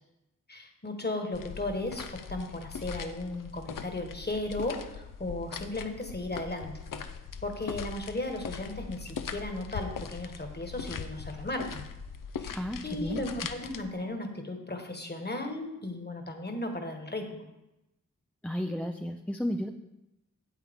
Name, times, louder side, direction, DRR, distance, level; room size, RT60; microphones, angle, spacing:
voice 1, 0.5-7.0 7.4-11.8 12.4-17.4, left 2 dB, 30° left, 4 dB, 1.5 m, -36 dB
sound 1, 1.3-13.8, left 6 dB, 75° left, 0.6 m, -41 dB
voice 2, 12.5-13.2 18.4-19.7, equal, 5° left, 4 dB, 0.5 m, -33 dB
9.3 x 7.7 x 3.6 m, 0.93 s
cardioid pair, 45°, 32 cm